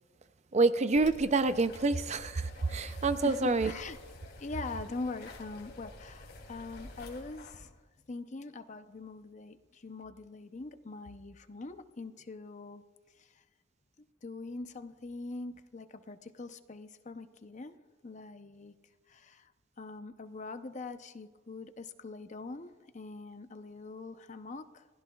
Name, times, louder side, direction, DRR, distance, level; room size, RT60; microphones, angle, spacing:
voice 1, 0.5-3.7, right 3 dB, 35° right, 12 dB, 0.5 m, -27 dB
sound 1, 0.9-7.6, left 2 dB, 60° left, 2.9 m, -49 dB
voice 2, 3.2-4.0 4.4-7.7 8.1-12.8 13.2-13.4 14.2-17.8 18.0-18.7 19.1-19.5 19.8-24.9, left 3 dB, 40° left, 9 dB, 0.7 m, -43 dB
27.5 x 16.0 x 2.3 m, 1.3 s
head